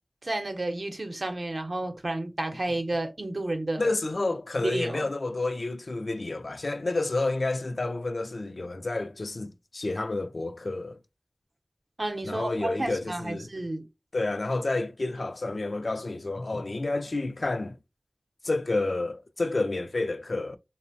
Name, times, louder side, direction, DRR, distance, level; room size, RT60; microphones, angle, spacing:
voice 1, 0.2-3.9 4.6-5.1 12.0-13.9, right 2 dB, 70° right, 0.6 m, -31 dB
voice 2, 3.8-11.0 12.2-13.5 14.1-17.8 18.4-20.6, left 2 dB, 80° left, 0.3 m, -30 dB
3.1 x 2.0 x 2.5 m
wide cardioid pair, 50°, 0 cm